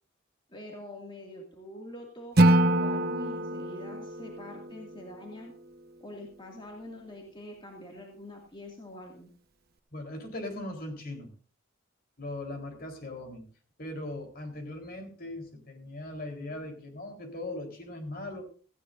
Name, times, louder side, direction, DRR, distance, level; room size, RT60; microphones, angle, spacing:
voice 1, 0.5-5.5 6.0-9.3, left 1 dB, 25° left, 0 dB, 2.3 m, -45 dB
Acoustic guitar / Strum, 2.4-5.5, right 1 dB, 55° right, 1.1 m, -26 dB
voice 2, 9.9-11.3 12.2-13.5 13.8-18.4, left 1 dB, 50° left, 3 dB, 3.9 m, -39 dB
18.0 x 15.5 x 2.6 m, 0.41 s
head